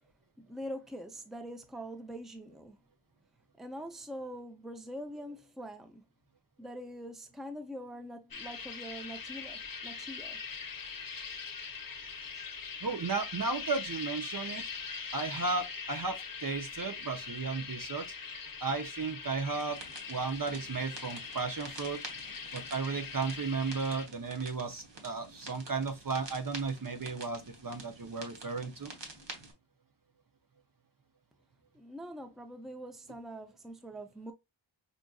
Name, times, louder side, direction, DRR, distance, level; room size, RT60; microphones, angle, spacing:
voice 1, 0.4-2.8 3.6-6.0 6.6-10.4 31.7-34.3, equal, ahead, 0.6 m, -44 dB
sound 1, 8.3-24.1, left 5 dB, 45° left, 0.8 m, -42 dB
voice 2, 12.8-14.6 15.1-18.1 18.6-19.8 20.1-22.0 22.5-28.9, right 4 dB, 45° right, 0.7 m, -34 dB
sound 2, 19.5-29.5, right 2 dB, 65° right, 1.2 m, -49 dB
5.2 x 2.5 x 2.3 m
wide cardioid pair, 70°, 46 cm